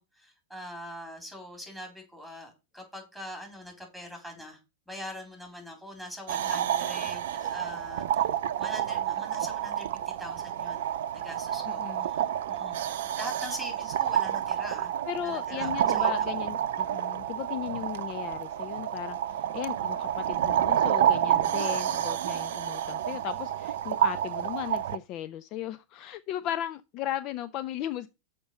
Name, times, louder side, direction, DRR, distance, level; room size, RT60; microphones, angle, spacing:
voice 1, 0.0-4.6 4.9-8.3 8.6-9.9 10.2-10.9 11.1-12.8 13.0-16.3, equal, 5° left, 3.9 m, -43 dB
sound 1, 6.3-25.0, right 10 dB, 60° right, 0.6 m, -29 dB
voice 2, 11.7-12.1 15.1-28.1, left 12 dB, 40° left, 0.4 m, -36 dB
6.9 x 5.1 x 6.7 m
figure-of-eight pair, 100°, 0 cm